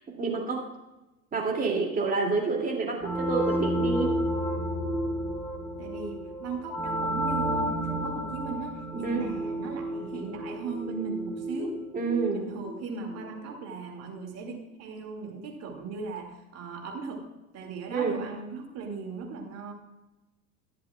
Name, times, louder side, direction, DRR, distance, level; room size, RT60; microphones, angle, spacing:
voice 1, 0.2-0.6 1.3-4.1 9.0-9.2 11.9-12.4 17.9-18.1, right 4 dB, 20° right, 0 dB, 2.6 m, -28 dB
sound 1, 3.0-13.4, equal, 5° left, 2.1 m, -31 dB
voice 2, 5.8-11.8 12.3-14.5 14.8-17.2 17.5-19.7, right 4 dB, 35° right, 2 dB, 2.3 m, -37 dB
22.5 x 7.6 x 2.4 m, 1.0 s
figure-of-eight pair, 90°, 45 cm